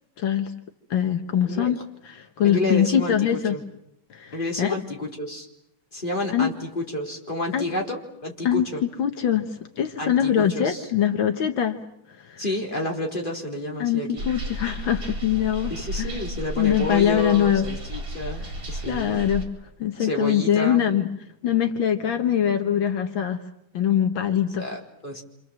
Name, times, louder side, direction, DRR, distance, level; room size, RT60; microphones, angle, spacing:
voice 1, 0.2-0.5 0.9-1.8 2.2-3.6 4.1-4.8 6.3-6.5 7.5-7.6 8.4-8.7 9.0-11.8 12.2-12.4 13.8-15.7 16.0-16.1 16.6-17.7 18.8-19.4 19.8-21.1 21.4-23.4 23.7-24.7, left 9 dB, 75° left, 6 dB, 2.0 m, -23 dB
voice 2, 2.4-3.6 4.3-5.5 5.9-8.8 10.0-10.9 12.4-14.2 15.7-19.2 20.0-20.8 24.6-25.2, left 1 dB, 25° left, 0 dB, 4.0 m, -30 dB
sound 1, 14.2-19.5, right 1 dB, 45° right, 4.8 m, -33 dB
28.5 x 26.5 x 7.6 m, 0.78 s
omnidirectional pair, 2.1 m